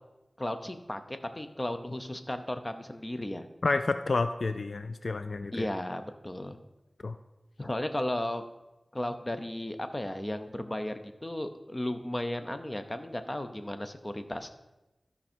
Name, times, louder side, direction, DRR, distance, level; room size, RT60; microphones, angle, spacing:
voice 1, 0.4-3.5 5.5-6.6 7.6-8.5 8.9-14.5, left 1 dB, 25° left, 8 dB, 0.8 m, -35 dB
voice 2, 3.6-5.7 7.0-7.2, left 3 dB, 70° left, 10 dB, 0.3 m, -29 dB
13.0 x 5.6 x 4.4 m, 1.0 s
wide cardioid pair, 75°, 0 cm